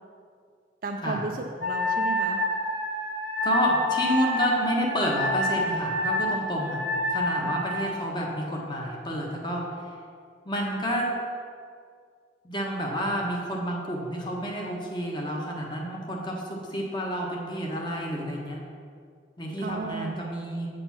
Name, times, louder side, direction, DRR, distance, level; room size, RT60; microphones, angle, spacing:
voice 1, 0.8-2.5 7.4-7.5 19.6-20.3, right 3 dB, 50° right, 2 dB, 0.4 m, -34 dB
Wind instrument woodwind instrument, 1.6-7.9, left 1 dB, 65° left, 1.7 m, -28 dB
voice 2, 3.4-6.8 7.1-9.7 10.4-11.1 12.4-18.6 19.4-20.7, equal, 25° left, -1 dB, 1.3 m, -29 dB
8.2 x 5.3 x 5.8 m, 2.2 s
head